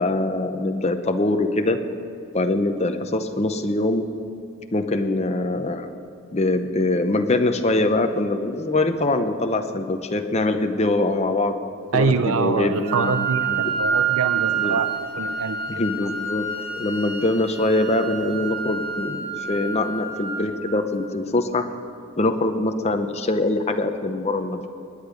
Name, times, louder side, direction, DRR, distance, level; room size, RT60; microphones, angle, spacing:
voice 1, 0.0-1.8 2.3-4.0 4.7-5.9 6.3-11.6 11.9-13.7 14.5-14.8 15.7-16.4 16.8-21.7 22.2-24.7, left 2 dB, 30° left, 6 dB, 0.7 m, -23 dB
voice 2, 11.9-15.8, right 4 dB, 65° right, 10 dB, 0.5 m, -25 dB
Wind instrument woodwind instrument, 12.8-20.8, right 6 dB, 45° right, 3.4 m, -28 dB
19.0 x 9.9 x 5.1 m, 2.9 s
head